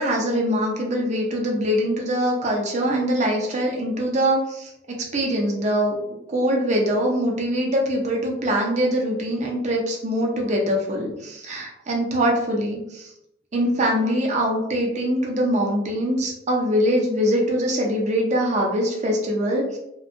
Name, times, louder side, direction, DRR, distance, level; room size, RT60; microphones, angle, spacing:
voice 1, 0.0-4.7 5.1-5.9 6.3-13.1 13.5-19.8, equal, 40° right, -1 dB, 0.6 m, -23 dB
2.6 x 2.2 x 2.5 m, 0.82 s
head